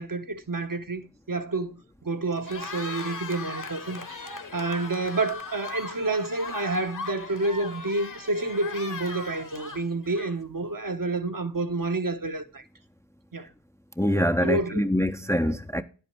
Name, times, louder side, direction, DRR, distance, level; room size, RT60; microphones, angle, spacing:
voice 1, 0.0-4.0 4.5-12.6 13.3-13.5 14.4-14.9, right 2 dB, 45° right, 1.1 m, -29 dB
Cheering, 2.3-10.6, left 4 dB, 45° left, 1.2 m, -38 dB
voice 2, 14.0-15.8, equal, 5° left, 0.6 m, -24 dB
10.5 x 8.0 x 4.5 m
wide cardioid pair, 50°, 45 cm